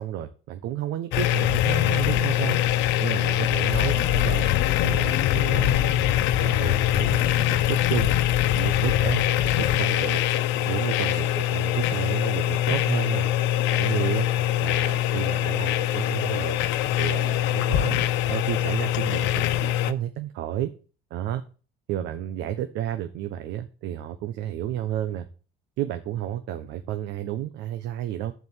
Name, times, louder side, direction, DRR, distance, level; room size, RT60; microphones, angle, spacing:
voice 1, 0.0-2.6 3.0-4.5 4.8-6.1 6.4-8.1 8.5-10.2 10.6-13.3 13.7-14.3 14.6-16.6 17.0-20.7 21.1-21.4 21.9-25.3 25.8-28.3, right 11 dB, 75° right, 9 dB, 1.2 m, -31 dB
sound 1, 1.1-19.9, left 12 dB, 80° left, 1.1 m, -23 dB
14.5 x 5.3 x 7.4 m, 0.37 s
cardioid pair, 115°, 18 cm